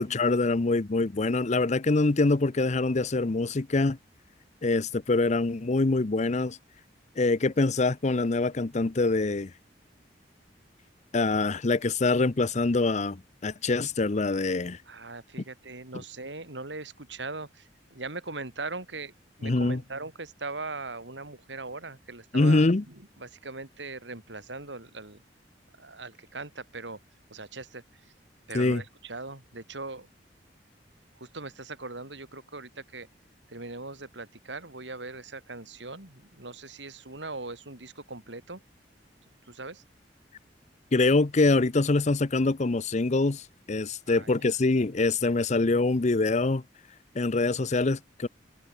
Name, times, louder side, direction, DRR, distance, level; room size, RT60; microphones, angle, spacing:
voice 1, 0.0-4.0 4.6-6.6 7.2-9.5 11.1-14.8 19.4-19.8 22.3-22.8 28.5-28.8 40.9-46.6 47.1-48.3, left 3 dB, 40° left, 0.7 m, -24 dB
voice 2, 14.9-19.1 19.4-25.2 25.8-27.0 27.3-28.0 28.5-30.1 31.2-33.1 33.5-38.6 39.5-39.8 44.1-44.6, right 3 dB, 85° right, 4.2 m, -40 dB
head